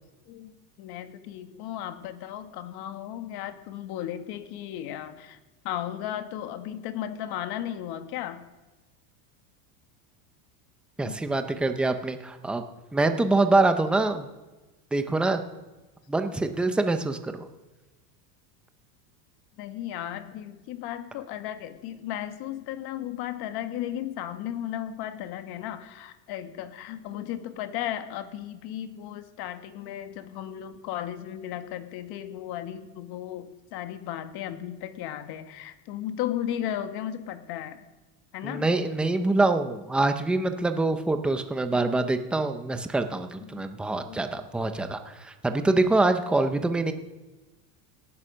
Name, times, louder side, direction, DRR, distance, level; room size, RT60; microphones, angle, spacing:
voice 1, 0.8-5.4 5.6-8.4 11.0-11.2 19.6-37.8 38.3-38.7 41.8-42.0 43.4-43.7 44.0-44.2, left 11 dB, 50° left, 9 dB, 1.4 m, -35 dB
voice 2, 11.0-12.6 12.9-14.3 14.9-15.4 16.1-17.4 38.4-46.9, right 2 dB, ahead, 8 dB, 0.4 m, -25 dB
17.5 x 11.5 x 6.3 m, 1.1 s
supercardioid pair, 150°, 50 cm